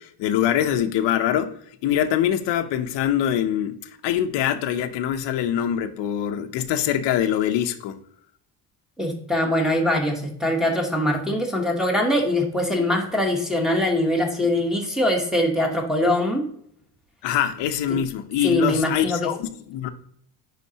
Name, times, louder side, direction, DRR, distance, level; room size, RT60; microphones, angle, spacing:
voice 1, 0.0-1.6 1.8-3.8 4.0-8.0 17.2-19.9, left 10 dB, 85° left, 0.7 m, -24 dB
voice 2, 9.0-16.4 18.4-19.3, left 1 dB, ahead, 1.0 m, -22 dB
10.0 x 3.9 x 2.7 m
cardioid pair, 160°, 42 cm